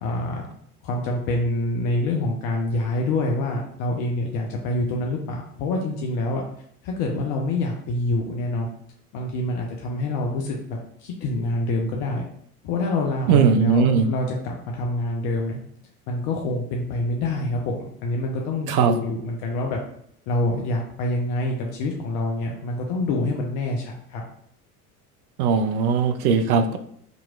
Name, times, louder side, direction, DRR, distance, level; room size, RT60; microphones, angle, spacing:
voice 1, 0.0-0.5 0.8-6.4 6.8-8.7 9.1-12.2 12.6-15.6 16.1-19.8 20.3-24.2, left 2 dB, 50° left, 0 dB, 0.7 m, -26 dB
voice 2, 13.3-14.1 18.7-19.0 25.4-26.8, right 6 dB, 65° right, 8 dB, 0.6 m, -19 dB
5.1 x 3.0 x 2.4 m, 0.67 s
figure-of-eight pair, 70°, 47 cm